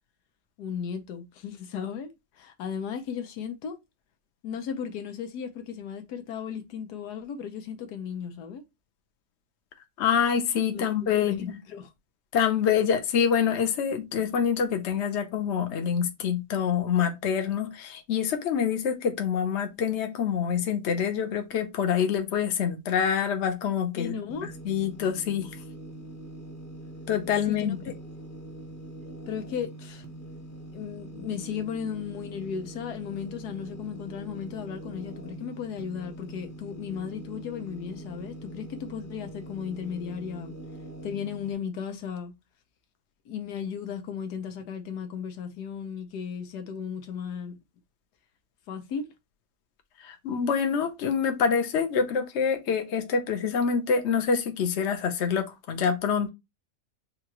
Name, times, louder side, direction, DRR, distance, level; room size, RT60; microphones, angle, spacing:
voice 1, 0.6-3.8 4.4-8.6 10.7-11.9 24.0-24.5 27.5-27.9 29.3-30.0 30.7-40.5 41.0-42.3 43.3-47.6 48.7-49.1, left 7 dB, 85° left, 1.4 m, -35 dB
voice 2, 10.0-11.4 12.3-24.2 24.6-25.5 27.1-27.8 50.0-56.3, left 7 dB, 50° left, 1.0 m, -26 dB
sound 1, 24.3-41.5, right 1 dB, 15° left, 0.7 m, -43 dB
6.7 x 2.5 x 2.9 m
omnidirectional pair, 1.7 m